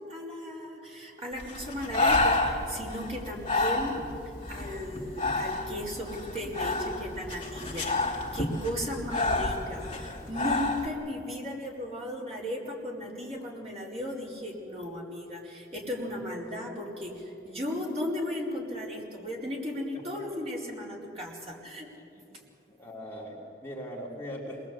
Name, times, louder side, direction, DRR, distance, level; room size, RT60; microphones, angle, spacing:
voice 1, 0.0-4.0 4.5-21.9, left 1 dB, 35° right, -3 dB, 4.6 m, -36 dB
Breathing, 1.4-10.9, left 2 dB, 30° left, 2.6 m, -30 dB
voice 2, 22.0-22.3 22.7-24.7, equal, 15° left, -4 dB, 3.3 m, -41 dB
27.0 x 21.0 x 8.4 m, 2.7 s
head